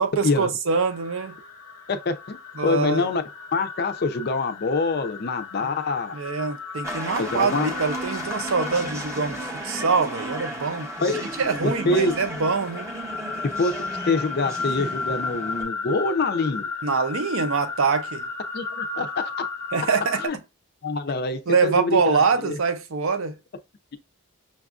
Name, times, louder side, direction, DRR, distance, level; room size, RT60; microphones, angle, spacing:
voice 1, 0.0-1.4 2.6-3.1 5.6-5.7 6.1-12.9 16.8-18.3 19.7-20.2 21.5-23.3, right 5 dB, 65° right, 0.5 m, -24 dB
sound 1, 0.7-20.3, left 4 dB, 85° left, 0.7 m, -35 dB
voice 2, 1.9-3.2 3.5-6.2 7.2-7.7 11.0-11.2 11.6-12.1 13.4-16.7 18.5-19.5 20.2-20.4 20.8-22.0 22.4-22.6, left 3 dB, 45° left, 0.4 m, -25 dB
sound 2, 6.8-15.6, right 1 dB, 15° right, 0.6 m, -34 dB
5.8 x 2.3 x 2.4 m
head